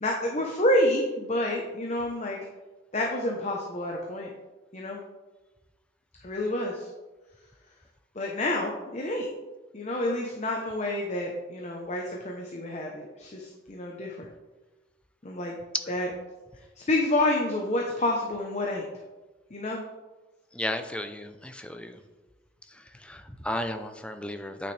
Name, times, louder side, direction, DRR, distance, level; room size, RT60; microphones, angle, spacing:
voice 1, 0.0-2.4 2.9-4.3 4.7-5.0 6.2-6.9 8.1-9.3 9.7-14.3 15.2-15.5 15.9-16.1 16.8-18.8 19.5-19.8, left 1 dB, 40° left, 0 dB, 0.8 m, -28 dB
voice 2, 20.5-22.0 22.7-24.7, left 1 dB, 5° left, 8 dB, 0.5 m, -34 dB
9.1 x 6.1 x 3.3 m, 1.2 s
head